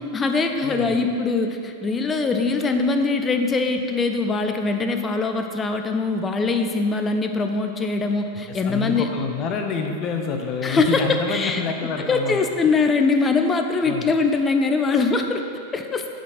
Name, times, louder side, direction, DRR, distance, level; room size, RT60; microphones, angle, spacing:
voice 1, 0.0-9.1 10.6-11.6 12.0-15.4 15.7-16.1, left 3 dB, 20° left, 5 dB, 0.6 m, -22 dB
voice 2, 0.6-1.0 8.5-12.4 13.8-14.1, left 5 dB, 40° left, 3 dB, 0.9 m, -28 dB
7.8 x 5.2 x 4.1 m, 2.4 s
hypercardioid pair, 95°, 0 cm